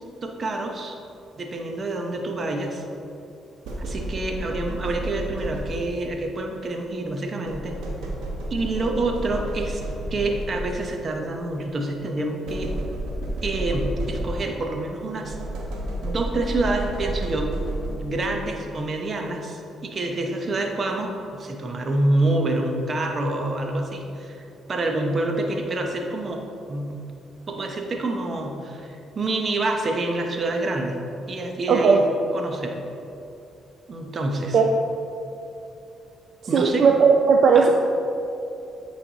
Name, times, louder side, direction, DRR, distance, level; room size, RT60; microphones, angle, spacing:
voice 1, 0.2-0.9 1.4-2.8 3.9-7.7 8.5-9.8 10.1-12.7 13.4-15.4 16.0-17.5 18.0-24.4 24.7-26.4 26.7-27.0 27.5-31.0 31.3-32.0 32.3-32.8 33.9-34.6 36.5-36.9 37.5-37.7, right 2 dB, 40° right, 2 dB, 0.8 m, -27 dB
sound 1, 3.6-6.1 7.5-11.0 12.5-14.7 15.2-18.3, right 1 dB, 85° right, 1.0 m, -31 dB
voice 2, 31.7-32.0 34.5-34.6 36.5-37.7, right 5 dB, 60° right, 1 dB, 0.4 m, -16 dB
8.8 x 3.3 x 4.0 m, 2.7 s
cardioid pair, 90°, 0 cm